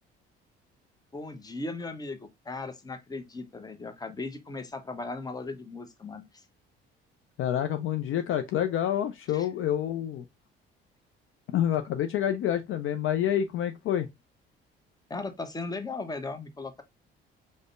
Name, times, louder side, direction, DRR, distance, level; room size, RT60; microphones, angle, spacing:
voice 1, 1.1-2.2 2.4-6.4 9.3-9.5 15.1-16.8, left 3 dB, 15° left, 0.7 m, -37 dB
voice 2, 7.4-10.2 11.5-14.1, left 10 dB, 45° left, 0.4 m, -28 dB
4.9 x 2.1 x 2.4 m
hypercardioid pair, 50°, 29 cm